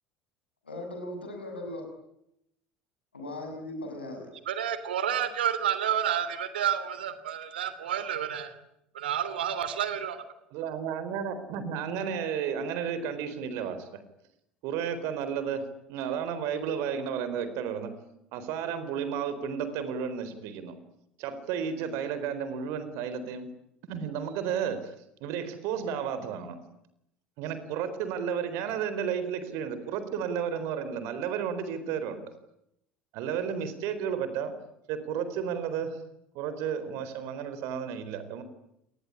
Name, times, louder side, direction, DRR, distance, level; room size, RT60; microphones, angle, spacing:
voice 1, 0.6-1.8 3.1-4.3, left 1 dB, 85° left, 6.6 m, -38 dB
voice 2, 4.5-8.5 8.9-10.2, right 9 dB, 75° right, 3.0 m, -30 dB
voice 3, 10.5-14.0 14.6-17.9 18.3-20.8 21.2-23.5 23.9-24.9 25.2-26.6 27.4-32.3 33.1-34.5 34.9-36.0 36.3-38.4, right 7 dB, 60° right, 4.2 m, -32 dB
28.0 x 20.0 x 10.0 m
figure-of-eight pair, 65°, 5 cm